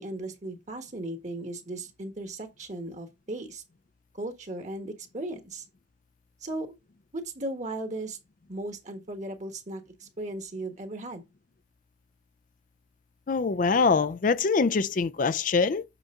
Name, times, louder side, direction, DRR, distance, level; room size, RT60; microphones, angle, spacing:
voice 1, 0.0-3.6 4.1-5.6 6.4-6.7 7.1-8.2 8.5-11.2, right 2 dB, 40° right, 1.3 m, -36 dB
voice 2, 13.3-15.8, left 4 dB, 50° left, 0.4 m, -24 dB
8.1 x 5.5 x 3.7 m
head